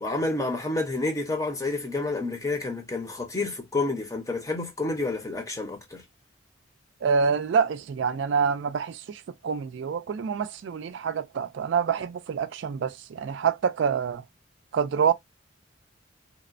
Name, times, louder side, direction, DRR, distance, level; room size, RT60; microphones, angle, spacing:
voice 1, 0.0-6.0, left 2 dB, 15° left, 0.6 m, -29 dB
voice 2, 7.0-14.2 14.7-15.1, right 6 dB, 65° right, 0.3 m, -26 dB
2.9 x 2.0 x 2.4 m
head